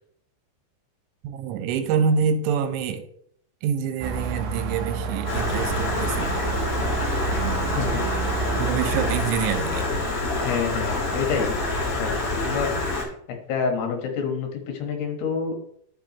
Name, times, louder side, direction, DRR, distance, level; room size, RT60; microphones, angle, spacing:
voice 1, 1.2-3.0 3.6-6.4 7.3-7.7 8.5-9.9, right 7 dB, 90° right, 8 dB, 3.3 m, -26 dB
sound 1, 4.0-9.2, right 6 dB, 70° right, 2.1 m, -29 dB
Stream, 5.3-13.0, left 2 dB, 45° left, 2.2 m, -27 dB
voice 2, 7.7-8.0 10.4-11.6 12.0-12.7 13.0-13.1 13.5-15.5, left 6 dB, 70° left, 3 dB, 3.3 m, -28 dB
11.5 x 7.4 x 3.0 m, 0.67 s
omnidirectional pair, 5.2 m